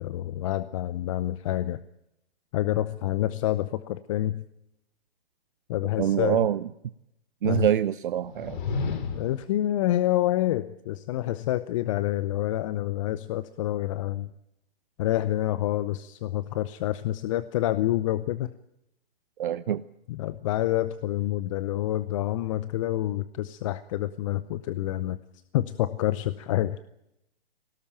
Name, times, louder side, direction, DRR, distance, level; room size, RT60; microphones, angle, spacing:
voice 1, 0.0-1.8 2.5-4.5 5.7-6.4 7.4-7.7 8.8-14.3 15.0-18.5 20.1-25.2 25.5-26.8, left 14 dB, 30° left, 14 dB, 0.8 m, -28 dB
voice 2, 6.0-6.7 7.4-8.6 19.4-19.8, right 10 dB, 55° right, 13 dB, 0.8 m, -25 dB
sound 1, 8.2-9.5, left 4 dB, 50° left, 4.1 m, -32 dB
22.0 x 18.0 x 8.9 m, 0.83 s
hypercardioid pair, 135°, 31 cm